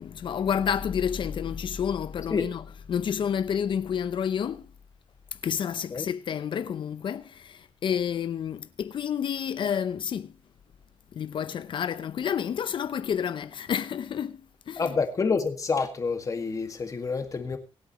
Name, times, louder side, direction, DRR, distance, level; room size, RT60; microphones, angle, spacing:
voice 1, 0.0-2.6 2.9-4.7 5.4-10.3 11.1-14.8, left 8 dB, 55° left, 0.7 m, -29 dB
voice 2, 14.8-17.6, left 4 dB, 35° left, 1.8 m, -28 dB
24.0 x 8.6 x 3.0 m
wide cardioid pair, 145°, 10 cm